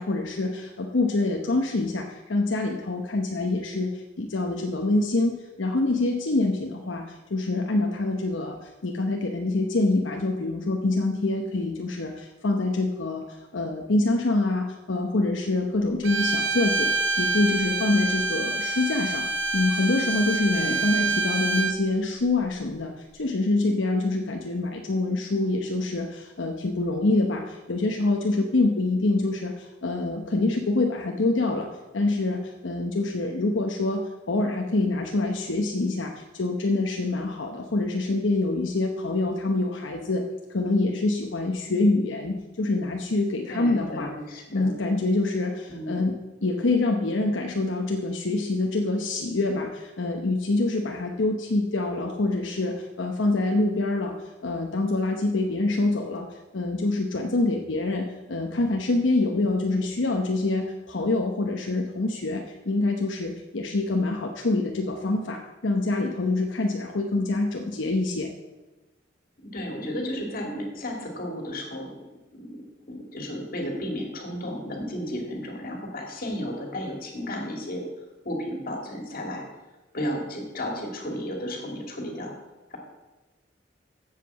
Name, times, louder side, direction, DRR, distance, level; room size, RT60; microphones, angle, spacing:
voice 1, 0.0-19.3 19.5-31.7 31.9-40.2 40.5-44.1 44.5-54.2 54.4-68.3, left 2 dB, 80° left, 2 dB, 0.9 m, -26 dB
Bowed string instrument, 16.0-21.8, right 3 dB, 70° right, 0.7 m, -26 dB
voice 2, 20.5-21.2 43.5-44.7 45.7-46.0 69.5-71.9 72.4-72.6 72.9-77.8 78.2-79.4 79.9-82.3 82.7-82.8, equal, 50° left, 1 dB, 2.3 m, -33 dB
7.7 x 7.5 x 7.0 m, 1.1 s
head